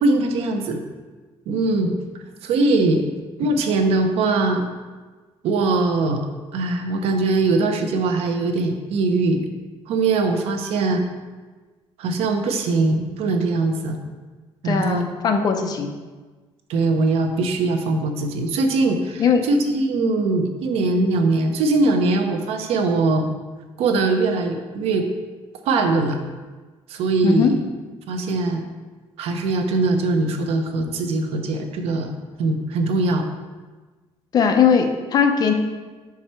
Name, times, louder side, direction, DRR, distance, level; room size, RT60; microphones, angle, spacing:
voice 1, 0.0-0.8 1.5-1.9 2.4-3.1 3.4-4.7 5.4-6.3 6.5-9.4 9.9-11.1 12.0-14.0 14.6-15.1 16.7-23.3 23.8-25.1 25.6-26.2 26.9-27.6 28.1-28.6 29.2-32.1 32.4-33.2, right 3 dB, 75° right, 5 dB, 0.8 m, -21 dB
voice 2, 14.6-15.9 19.2-19.4 27.2-27.5 34.3-35.5, left 6 dB, 40° left, 5 dB, 0.6 m, -19 dB
5.7 x 4.8 x 4.3 m, 1.3 s
cardioid pair, 175°, 10 cm